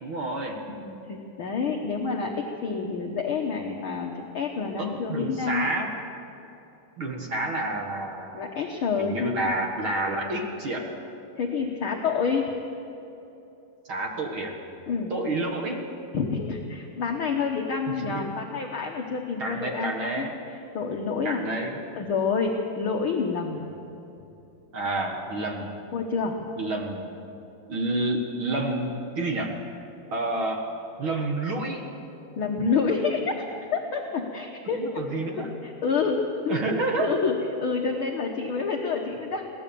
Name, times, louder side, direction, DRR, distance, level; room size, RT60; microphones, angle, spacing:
voice 1, 0.0-0.6 4.8-5.9 7.0-8.5 9.0-10.9 13.9-14.6 15.1-15.8 17.9-18.3 19.4-20.3 21.2-21.8 24.7-25.7 26.6-27.1 27.7-29.6 30.1-30.7 31.0-31.8 34.8-35.5 36.5-37.1, right 2 dB, 45° right, 1 dB, 2.0 m, -29 dB
voice 2, 0.7-5.7 8.3-9.5 11.3-12.5 14.9-15.1 16.1-20.3 20.7-21.4 21.9-23.6 25.9-26.4 32.4-33.4 33.7-35.0 35.4-36.6 37.0-39.5, left 5 dB, 60° left, 1 dB, 1.4 m, -28 dB
23.0 x 17.5 x 7.0 m, 2.9 s
omnidirectional pair, 4.0 m